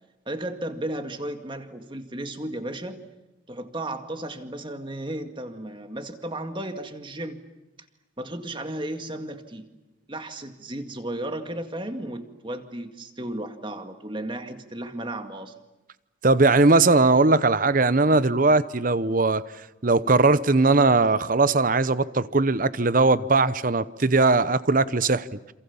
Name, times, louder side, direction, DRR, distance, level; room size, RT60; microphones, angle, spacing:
voice 1, 0.3-3.0 3.5-7.4 8.2-9.7 10.1-15.5, right 1 dB, 25° right, 2.0 m, -34 dB
voice 2, 16.2-19.4 19.8-25.3, right 3 dB, 45° right, 0.9 m, -19 dB
28.0 x 27.5 x 7.2 m
head